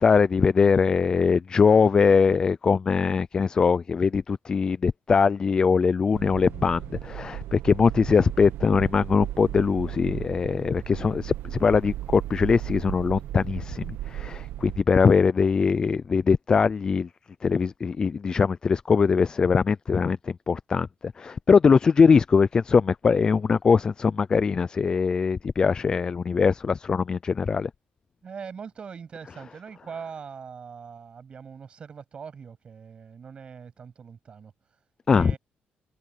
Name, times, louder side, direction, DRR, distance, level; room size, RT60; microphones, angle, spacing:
voice 1, 0.0-17.1 17.4-27.7 35.1-35.3, left 5 dB, 25° left, 0.3 m, -22 dB
sound 1, 6.1-14.8, right 14 dB, 85° right, 0.8 m, -36 dB
voice 2, 28.2-34.8 35.1-35.4, right 6 dB, 30° right, 7.4 m, -42 dB
cardioid pair, 175°, 3 cm